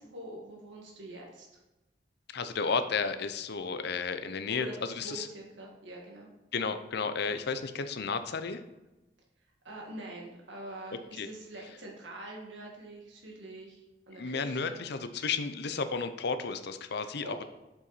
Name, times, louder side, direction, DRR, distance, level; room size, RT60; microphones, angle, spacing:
voice 1, 0.0-1.5 4.5-6.3 9.6-14.8 17.0-17.4, right 1 dB, 80° right, -1 dB, 1.8 m, -45 dB
voice 2, 2.3-5.3 6.5-8.6 11.2-11.3 14.2-17.4, left 5 dB, 65° left, 10 dB, 0.6 m, -33 dB
7.4 x 5.7 x 4.1 m, 1.0 s
head